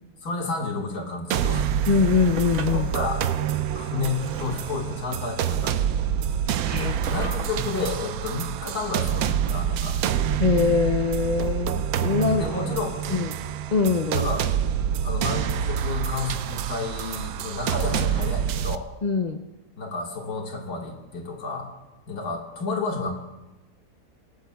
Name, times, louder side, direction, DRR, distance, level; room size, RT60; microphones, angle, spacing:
voice 1, 0.2-1.7 2.7-3.2 3.7-5.8 6.8-10.0 12.4-13.3 14.1-14.4 15.0-18.9 19.8-21.7 22.1-23.1, left 3 dB, 70° left, 0 dB, 2.2 m, -31 dB
sound 1, 1.3-18.8, right 9 dB, 70° right, 1.0 m, -27 dB
Drawer open or close, 1.7-9.2 9.6-9.7, right 5 dB, 55° right, 1.1 m, -39 dB
voice 2, 1.9-2.9 6.6-7.2 10.4-12.5 13.1-13.3 13.7-14.2 19.0-19.4, left 5 dB, 55° left, 4 dB, 0.4 m, -23 dB
26.0 x 14.5 x 2.3 m, 1.1 s
omnidirectional pair, 1.7 m